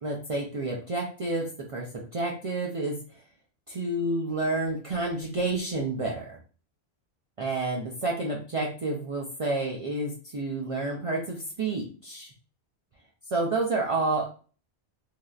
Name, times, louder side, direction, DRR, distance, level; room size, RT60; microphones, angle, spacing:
voice 1, 0.0-1.9 2.1-3.0 3.7-6.4 7.4-12.3 13.3-14.3, right 2 dB, 45° right, -2 dB, 0.4 m, -29 dB
3.2 x 2.7 x 2.3 m, 0.39 s
omnidirectional pair, 1.1 m